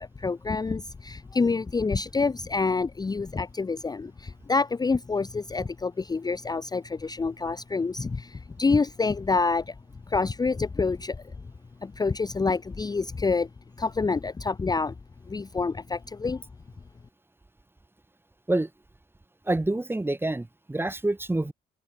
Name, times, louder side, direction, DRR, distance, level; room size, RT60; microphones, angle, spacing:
voice 1, 0.0-9.7 10.1-11.3 11.8-13.5 13.8-14.9 15.3-16.4, left 4 dB, 20° left, 0.6 m, -27 dB
voice 2, 19.5-21.5, right 2 dB, 10° right, 1.1 m, -27 dB
open air
cardioid pair, 90°, 20 cm